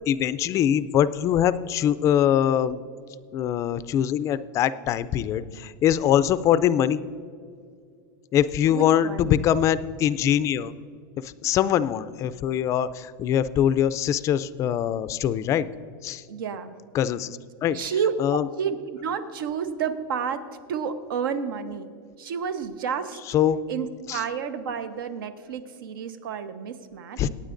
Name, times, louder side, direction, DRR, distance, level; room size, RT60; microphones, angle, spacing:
voice 1, 0.1-2.8 3.3-7.0 8.3-10.7 11.2-15.7 16.0-16.2 16.9-17.8 18.2-18.4 23.3-23.6 24.1-24.2 27.2-27.3, left 10 dB, 25° left, 15 dB, 0.4 m, -23 dB
voice 2, 8.7-9.4 16.3-16.8 17.7-21.9 22.2-23.2 23.7-27.2, right 6 dB, 85° right, 10 dB, 1.0 m, -30 dB
23.5 x 9.4 x 2.6 m, 2.3 s
supercardioid pair, 150°, 11 cm